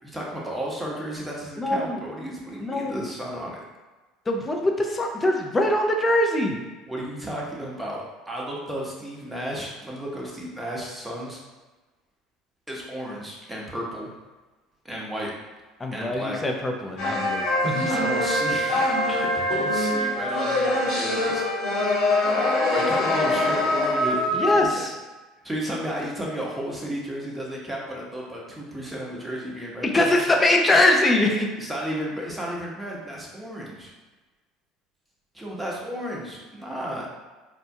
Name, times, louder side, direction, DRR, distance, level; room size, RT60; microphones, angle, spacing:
voice 1, 0.0-3.6 6.9-11.4 12.7-14.1 14.8-15.3 15.9-16.4 17.9-21.4 22.7-24.9 25.4-30.2 31.6-33.9 35.3-37.1, equal, 10° right, -4 dB, 1.0 m, -33 dB
voice 2, 1.6-2.0 2.6-3.1 4.3-6.6 15.8-17.9 24.3-24.9 29.8-31.5, left 1 dB, 25° left, 2 dB, 0.6 m, -22 dB
sound 1, 17.0-24.6, left 1 dB, 65° left, 1.0 m, -23 dB
4.2 x 2.2 x 2.7 m, 1.2 s
hypercardioid pair, 75°, 0 cm